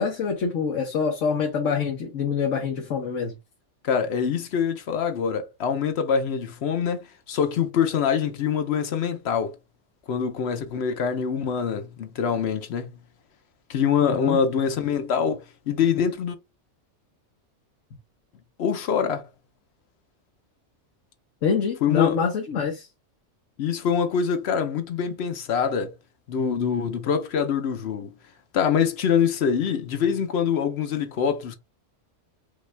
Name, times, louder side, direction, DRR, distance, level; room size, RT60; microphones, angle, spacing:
voice 1, 0.0-3.4 14.0-14.4 21.4-22.9, left 6 dB, 85° left, 1.3 m, -25 dB
voice 2, 3.8-9.6 10.1-12.9 13.7-16.4 18.6-19.2 21.8-22.2 23.6-25.9 26.3-28.1 28.5-31.5, left 7 dB, 65° left, 0.9 m, -24 dB
5.3 x 2.3 x 3.2 m
omnidirectional pair, 1.3 m